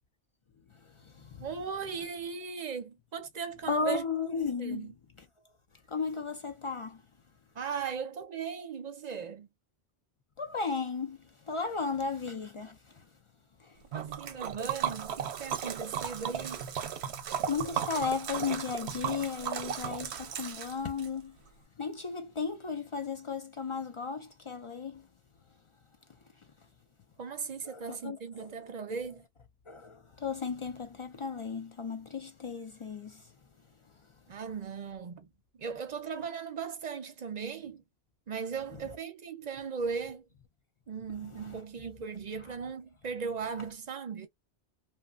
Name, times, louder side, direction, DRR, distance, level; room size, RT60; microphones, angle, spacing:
voice 1, 0.7-1.5 3.7-4.9 5.9-7.0 10.4-13.1 13.6-13.8 17.5-21.4 21.8-25.1 27.6-28.5 29.7-33.3 41.4-41.6, left 5 dB, 55° left, 0.3 m, -35 dB
voice 2, 1.4-4.0 4.6-4.9 7.5-9.5 13.9-16.7 27.2-29.2 34.3-35.3 35.6-37.8 38.3-40.2 40.9-44.3, right 6 dB, 50° right, 0.6 m, -38 dB
Liquid, 13.9-21.1, right 8 dB, 90° right, 0.9 m, -35 dB
2.8 x 2.1 x 2.3 m
omnidirectional pair, 1.1 m